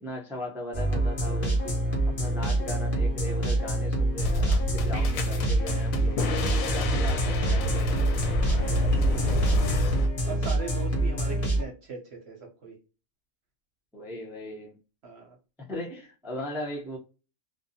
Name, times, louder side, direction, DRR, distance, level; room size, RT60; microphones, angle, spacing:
voice 1, 0.0-1.7 2.2-6.2 6.7-8.0 13.9-14.8 15.7-17.0, left 1 dB, 5° right, 0.3 m, -38 dB
sound 1, 0.7-11.6, right 1 dB, 45° left, 0.9 m, -26 dB
sound 2, 4.2-10.1, left 1 dB, 80° left, 1.0 m, -29 dB
voice 2, 8.5-9.7 10.3-12.8 15.0-15.4, right 4 dB, 60° right, 0.8 m, -40 dB
2.5 x 2.3 x 2.6 m
omnidirectional pair, 1.4 m